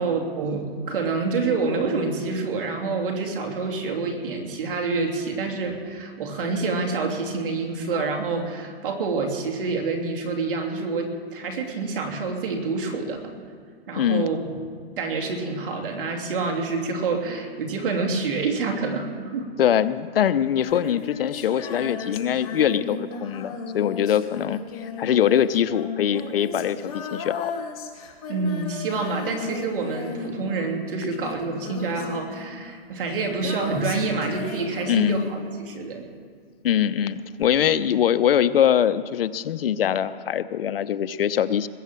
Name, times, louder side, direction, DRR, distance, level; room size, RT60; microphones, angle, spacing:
voice 1, 0.0-13.4 13.9-14.6 15.0-19.5 28.3-36.0 37.6-37.8, right 4 dB, 60° right, 2 dB, 3.1 m, -27 dB
voice 2, 14.0-14.3 19.6-27.5 34.9-35.2 36.6-41.7, left 9 dB, 65° left, 14 dB, 0.8 m, -23 dB
Female singing, 20.5-35.9 37.4-37.5, left 5 dB, 35° left, 2.2 m, -36 dB
20.5 x 7.7 x 7.5 m, 2.1 s
hypercardioid pair, 155°, 31 cm